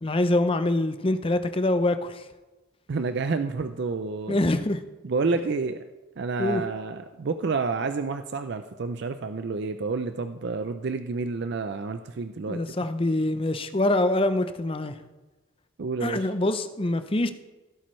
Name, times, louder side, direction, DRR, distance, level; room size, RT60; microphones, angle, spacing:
voice 1, 0.0-2.2 4.3-4.8 6.4-6.6 12.5-15.0 16.0-17.3, left 1 dB, 25° left, 10 dB, 0.5 m, -25 dB
voice 2, 2.9-4.4 5.0-5.8 6.2-12.6 15.8-16.3, right 4 dB, 55° right, 9 dB, 0.4 m, -29 dB
16.5 x 8.7 x 3.2 m, 1.2 s
head